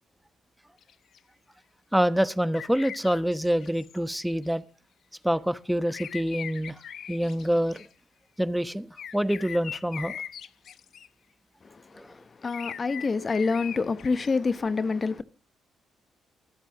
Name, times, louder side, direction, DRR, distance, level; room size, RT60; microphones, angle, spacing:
sound 1, 0.8-1.2 2.5-4.4 5.9-7.9 9.0-11.1 12.4-14.3, left 9 dB, 65° left, 0.8 m, -41 dB
voice 1, 1.9-4.6 5.2-6.8 7.1-7.8 8.4-10.2 11.9-12.1, equal, 5° right, 1.1 m, -26 dB
voice 2, 11.6-15.2, left 4 dB, 40° left, 1.0 m, -27 dB
24.5 x 8.4 x 3.0 m
hypercardioid pair, 50°, 0 cm